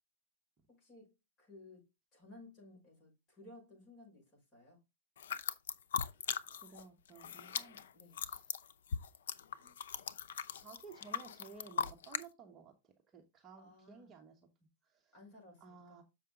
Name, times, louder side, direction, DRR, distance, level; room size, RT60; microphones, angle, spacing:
voice 1, 0.7-4.8 7.9-8.3 13.6-14.1 15.1-16.0, left 2 dB, 25° left, 5.5 m, -58 dB
sound 1, 5.2-6.8 7.1-12.3, left 7 dB, 85° left, 0.6 m, -39 dB
voice 2, 6.5-7.8 8.1-8.6 9.6-9.8 10.5-14.4 14.8-15.2 15.6-16.0, right 5 dB, 25° right, 1.1 m, -56 dB
7.0 x 5.5 x 3.8 m
supercardioid pair, 145°, 0 cm